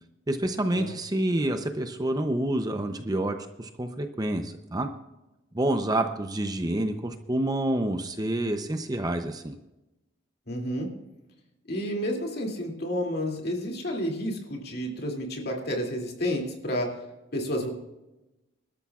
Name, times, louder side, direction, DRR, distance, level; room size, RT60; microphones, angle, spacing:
voice 1, 0.3-4.9 5.5-9.6, right 1 dB, 20° right, 7 dB, 0.6 m, -28 dB
voice 2, 10.5-11.0 11.7-17.0 17.3-17.7, equal, 50° left, 0 dB, 2.6 m, -30 dB
24.0 x 12.5 x 2.4 m, 0.98 s
head